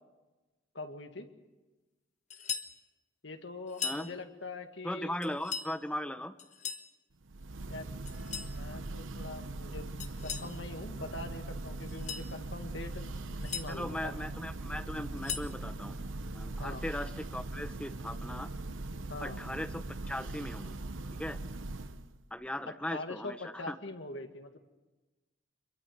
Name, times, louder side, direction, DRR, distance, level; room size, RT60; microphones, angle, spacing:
voice 1, 0.7-1.3 3.2-5.3 7.7-8.0 8.5-9.9 10.2-14.1 16.6-16.8 19.1-19.4 22.9-24.6, left 2 dB, 70° left, 5 dB, 2.0 m, -43 dB
sound 1, 2.3-2.7 3.7-4.1 5.2-5.7 6.4-6.9 8.1-8.5 10.0-10.5 11.8-12.3 13.2-13.7 15.0-15.5, left 7 dB, 35° left, 1.2 m, -38 dB
voice 2, 4.8-6.3 13.7-16.0 16.3-18.5 19.2-20.8 21.2-21.4 22.3-23.7, left 1 dB, 5° left, 9 dB, 0.8 m, -38 dB
Church bell, 7.2-22.2, right 2 dB, 80° right, 1.0 m, -40 dB
25.5 x 23.0 x 6.7 m, 1.2 s
head